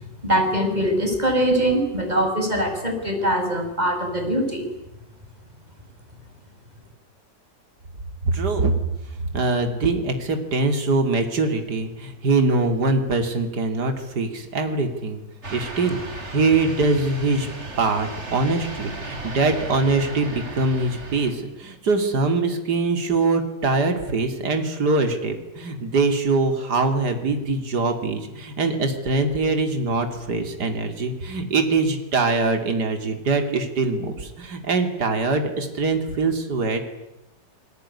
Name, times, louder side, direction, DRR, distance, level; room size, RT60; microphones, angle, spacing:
voice 1, 0.2-4.6, right 1 dB, 20° right, 4 dB, 5.9 m, -22 dB
voice 2, 8.3-8.7 9.3-15.2 15.5-17.5 17.8-36.8, right 3 dB, 65° right, 6 dB, 3.3 m, -23 dB
sound 1, 15.4-21.3, right 2 dB, 40° right, 3.7 m, -35 dB
27.5 x 21.0 x 9.8 m, 0.93 s
omnidirectional pair, 1.9 m